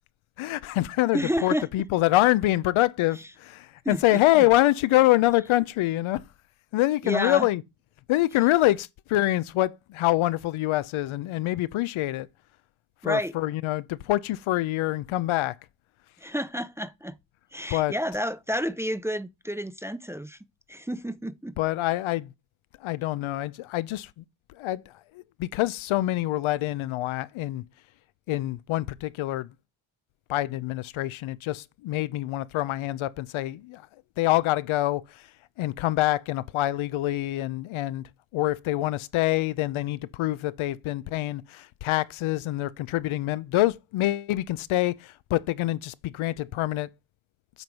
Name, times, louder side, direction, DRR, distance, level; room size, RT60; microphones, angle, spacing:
voice 1, 0.4-6.2 6.7-7.6 8.1-12.3 13.0-15.6 17.7-17.9 21.6-22.3 22.8-24.2 24.5-27.6 28.3-29.5 30.3-33.9 34.2-35.3 35.6-46.9, left 16 dB, 90° left, 0.7 m, -25 dB
voice 2, 1.1-1.7 3.8-4.4 7.0-7.5 13.0-13.3 16.2-17.2 17.5-20.4 20.7-21.5, equal, 5° right, 0.5 m, -30 dB
8.1 x 4.5 x 5.4 m
cardioid pair, 90°, 47 cm